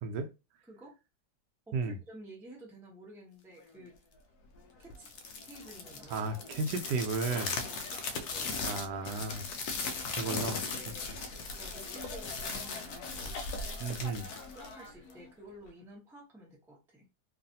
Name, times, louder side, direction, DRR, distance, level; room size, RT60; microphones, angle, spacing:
voice 1, 1.7-3.9 4.8-5.1 5.4-6.3 7.6-8.5 10.4-11.1 11.6-13.4 14.5-17.0, right 1 dB, 5° right, 0.5 m, -51 dB
sound 1, 4.9-15.3, left 4 dB, 70° left, 1.0 m, -38 dB
voice 2, 6.1-7.6 8.6-9.5 10.2-10.6 13.8-14.3, right 4 dB, 80° right, 1.2 m, -34 dB
3.1 x 2.5 x 2.7 m
omnidirectional pair, 1.8 m